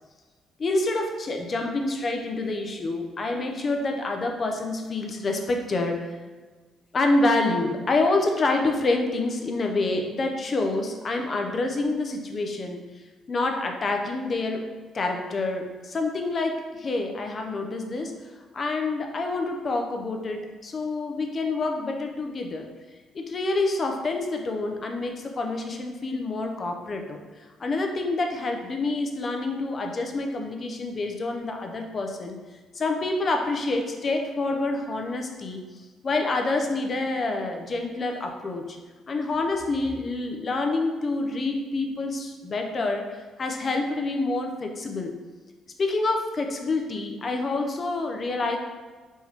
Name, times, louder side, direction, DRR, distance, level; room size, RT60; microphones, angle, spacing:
voice 1, 0.6-6.1 6.9-12.8 13.3-14.6 14.9-18.1 18.5-22.7 23.1-27.2 27.6-32.4 32.7-35.6 36.0-38.8 39.1-45.1 45.8-48.6, left 2 dB, 45° left, 3 dB, 0.6 m, -27 dB
4.5 x 2.9 x 3.5 m, 1.4 s
supercardioid pair, 75°, 0 cm